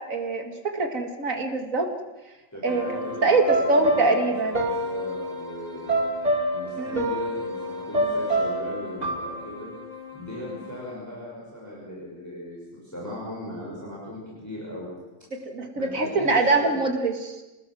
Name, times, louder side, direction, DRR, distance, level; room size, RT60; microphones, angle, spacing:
voice 1, 0.0-1.9 2.6-2.9 3.2-4.7 6.8-7.1 15.3-17.3, right 3 dB, 80° right, 4 dB, 2.6 m, -24 dB
voice 2, 2.5-6.0 6.5-9.7 10.1-14.9 15.7-16.8, left 1 dB, 10° left, -6 dB, 6.3 m, -38 dB
sound 1, 2.7-10.9, right 1 dB, 30° right, 2.4 m, -28 dB
28.0 x 19.0 x 6.3 m, 1.1 s
omnidirectional pair, 1.4 m